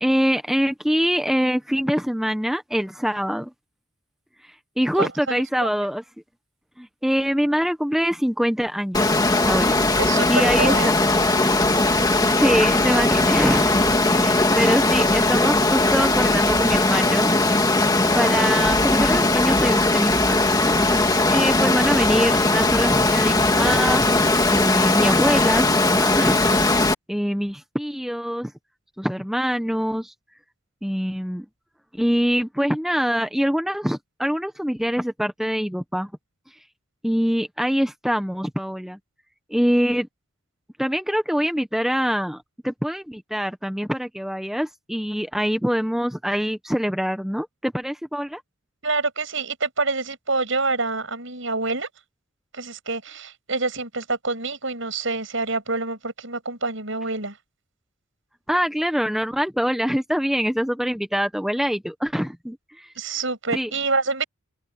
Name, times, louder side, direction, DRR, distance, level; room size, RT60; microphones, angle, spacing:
voice 1, 0.0-3.5 4.4-6.0 6.8-9.8 10.3-11.0 12.2-17.3 18.1-20.4 20.7-20.8 21.3-24.2 24.5-26.8 27.1-28.5 29.0-30.1 30.8-31.5 32.0-36.1 37.0-39.0 39.5-40.1 40.8-48.4 58.5-62.9 63.5-63.7, equal, ahead, 0.9 m, -24 dB
voice 2, 5.0-5.4 10.0-10.9 48.8-51.9 52.5-57.4 63.0-64.2, right 3 dB, 65° right, 7.0 m, -26 dB
Water, 8.9-26.9, left 2 dB, 20° left, 2.0 m, -19 dB
open air
head